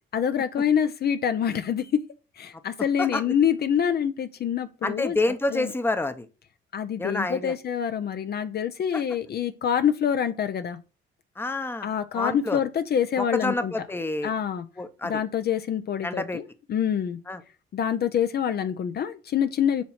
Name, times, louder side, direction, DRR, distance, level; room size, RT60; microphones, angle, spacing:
voice 1, 0.1-2.0 2.4-5.2 5.5-5.7 6.7-10.8 11.8-13.7 14.2-14.7 15.0-17.2 17.7-19.8, left 8 dB, 55° left, 0.6 m, -26 dB
voice 2, 4.8-6.3 7.0-7.5 8.9-9.0 11.4-11.9 12.1-12.6 13.2-14.3 14.8-15.2 16.0-16.4 17.3-17.4, left 2 dB, 10° left, 0.7 m, -28 dB
7.1 x 3.1 x 5.6 m
cardioid pair, 90°, 20 cm